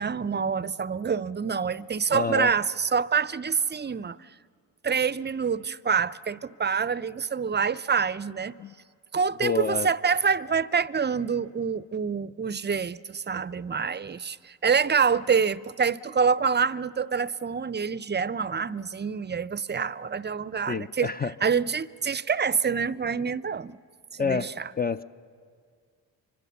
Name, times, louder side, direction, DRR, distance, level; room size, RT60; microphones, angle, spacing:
voice 1, 0.0-4.2 4.8-8.5 9.1-21.1 21.4-23.8 24.1-24.7, right 6 dB, 25° right, 0.6 m, -26 dB
voice 2, 2.1-2.5 8.6-8.7 9.4-9.9 20.7-21.3 24.2-24.5 24.8-25.0, left 5 dB, 20° left, 0.6 m, -27 dB
24.5 x 24.5 x 7.0 m
supercardioid pair, 60°, 43 cm